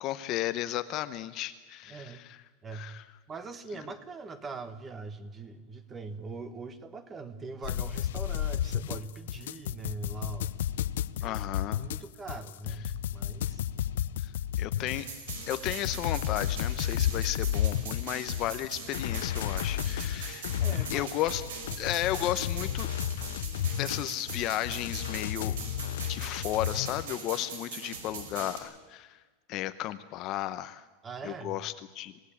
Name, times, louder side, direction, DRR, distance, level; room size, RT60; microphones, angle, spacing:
voice 1, 0.0-2.4 2.7-3.0 11.2-11.8 14.2-14.3 14.6-15.1 15.5-20.6 20.9-21.4 21.8-22.9 23.8-25.6 26.1-29.2 29.5-30.8 31.2-32.1, left 14 dB, 30° left, 11 dB, 0.8 m, -34 dB
voice 2, 1.9-2.2 2.6-3.0 3.3-10.5 11.2-11.4 11.8-13.7 20.6-21.1 31.0-31.6, right 4 dB, 15° right, 12 dB, 1.3 m, -42 dB
sound 1, 7.6-27.1, left 11 dB, 85° left, 0.6 m, -32 dB
sound 2, 14.9-28.6, right 5 dB, 75° right, 5.3 m, -41 dB
27.5 x 17.5 x 8.6 m, 1.3 s
supercardioid pair, 175°, 0 cm